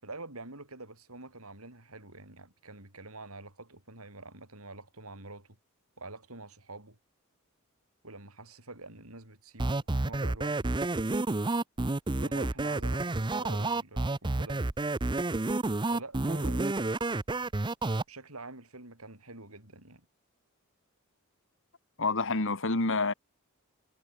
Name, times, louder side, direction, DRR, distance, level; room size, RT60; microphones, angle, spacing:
voice 1, 0.0-5.6 6.0-7.0 8.0-10.8 12.2-14.7 15.9-16.8 18.1-20.1, right 2 dB, 90° right, 7.3 m, -46 dB
sound 1, 9.6-18.0, right 2 dB, 20° right, 0.7 m, -30 dB
voice 2, 22.0-23.1, left 3 dB, 60° left, 2.3 m, -28 dB
head